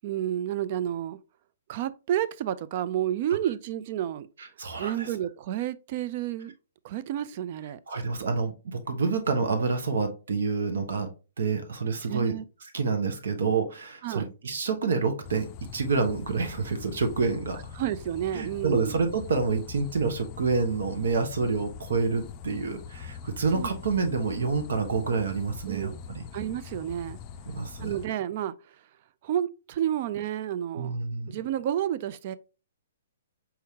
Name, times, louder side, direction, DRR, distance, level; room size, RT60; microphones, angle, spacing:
voice 1, 0.0-1.2 1.7-4.3 4.8-6.5 6.8-7.8 8.2-8.3 12.1-12.4 14.0-14.3 17.8-19.0 23.5-23.8 25.7-26.0 26.3-27.2 27.8-28.6 29.2-31.0 31.3-32.4, right 11 dB, 45° right, 0.4 m, -30 dB
voice 2, 4.6-5.1 7.9-11.1 11.4-12.3 12.7-17.6 18.3-26.2 27.5-28.0 30.8-31.4, right 4 dB, 70° right, 1.1 m, -28 dB
sound 1, 15.2-28.1, left 7 dB, 30° left, 0.4 m, -43 dB
4.6 x 3.5 x 2.8 m
hypercardioid pair, 140°, 0 cm